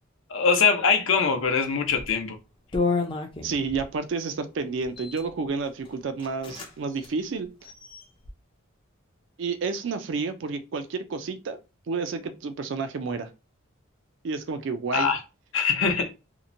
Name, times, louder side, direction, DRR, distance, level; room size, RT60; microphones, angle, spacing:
voice 1, 0.3-2.4 14.9-15.2 15.5-16.1, left 5 dB, 70° left, 0.6 m, -22 dB
sound 1, 1.9-2.1 2.7-3.9 4.8-5.3 5.8-5.9 6.2-6.7 7.0-7.1 7.6-8.3, left 4 dB, 25° left, 0.4 m, -30 dB
voice 2, 3.4-7.5 9.4-11.6 11.9-13.3 14.2-15.1, right 4 dB, 60° right, 0.4 m, -30 dB
2.8 x 2.1 x 2.5 m
head